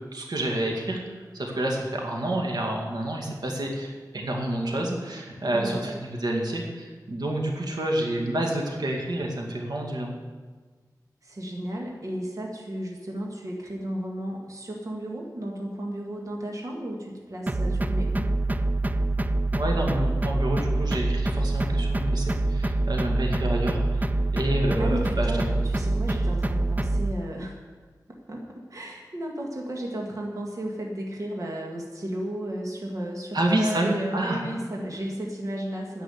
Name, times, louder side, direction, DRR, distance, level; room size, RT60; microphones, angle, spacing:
voice 1, 0.1-1.0 1.3-10.1 19.6-24.1 24.3-25.5 33.3-34.4, right 1 dB, 80° right, 0 dB, 2.2 m, -28 dB
voice 2, 5.4-5.9 11.2-18.3 24.8-27.6 28.1-36.0, right 1 dB, 55° right, -1 dB, 1.9 m, -34 dB
sound 1, 17.5-27.1, right 2 dB, 25° right, 0.4 m, -25 dB
10.5 x 7.8 x 9.4 m, 1.4 s
wide cardioid pair, 95°, 7 cm